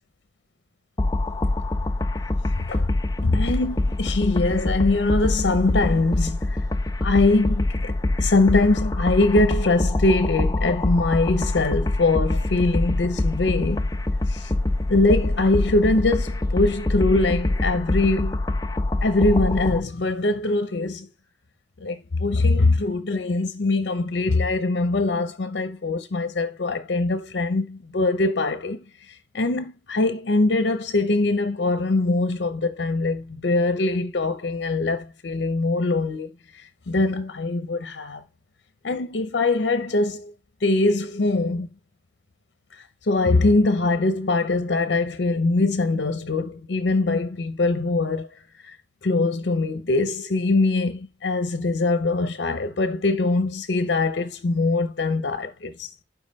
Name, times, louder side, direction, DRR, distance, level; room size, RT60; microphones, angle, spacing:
sound 1, 1.0-19.8, left 2 dB, 20° left, 0.4 m, -25 dB
voice 1, 3.2-6.6 7.0-13.9 14.3-14.5 14.9-18.4 19.0-21.1 21.8-28.8 29.3-36.3 36.9-38.2 38.8-40.3 40.6-41.7 43.0-48.3 48.6-48.7 49.0-55.9, left 2 dB, 70° left, 0.7 m, -22 dB
5.5 x 4.6 x 5.2 m
head